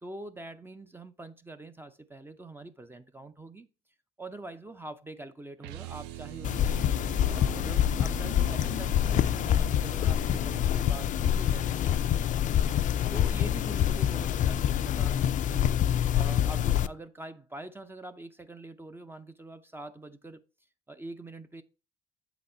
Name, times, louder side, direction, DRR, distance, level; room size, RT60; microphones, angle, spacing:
voice 1, 0.0-3.7 4.2-6.8 7.2-12.3 13.1-15.7 16.1-20.4 20.9-21.6, right 2 dB, 15° right, 0.5 m, -44 dB
sound 1, 5.6-11.7, right 12 dB, 90° right, 0.4 m, -43 dB
sound 2, 6.4-16.9, left 10 dB, 50° left, 0.4 m, -26 dB
7.8 x 4.0 x 4.2 m
cardioid pair, 110°, 17 cm